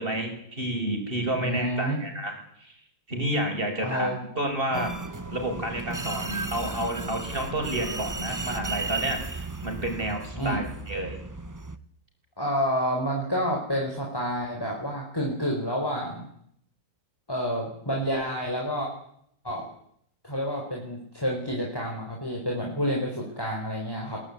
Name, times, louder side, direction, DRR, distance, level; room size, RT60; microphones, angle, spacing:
voice 1, 0.0-2.7 3.1-4.9 5.3-11.2, right 1 dB, 35° right, 4 dB, 6.2 m, -30 dB
voice 2, 1.3-2.0 3.8-4.2 4.7-4.8 10.4-10.6 12.4-16.2 17.3-18.9 19.4-19.6 20.2-24.2, equal, 15° left, -1 dB, 4.5 m, -29 dB
sound 1, 4.7-11.8, right 3 dB, 15° right, 0.8 m, -34 dB
22.5 x 18.5 x 9.7 m, 0.68 s
omnidirectional pair, 1.7 m